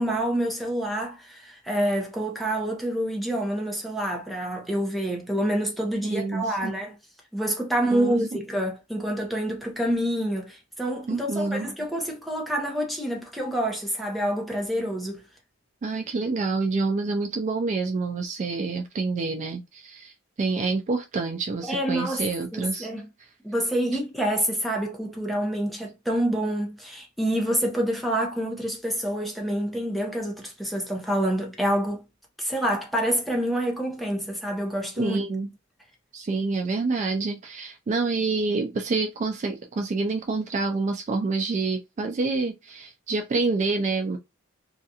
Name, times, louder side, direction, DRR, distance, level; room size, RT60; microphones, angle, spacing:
voice 1, 0.0-6.9 7.3-15.2 21.7-22.2 22.5-23.1 23.4-32.0 32.4-35.2, right 1 dB, ahead, 0.7 m, -27 dB
voice 2, 6.0-6.7 7.9-8.2 11.1-11.7 15.8-22.9 35.0-35.5 36.1-44.2, right 3 dB, 35° right, 0.3 m, -27 dB
2.4 x 2.3 x 2.7 m
head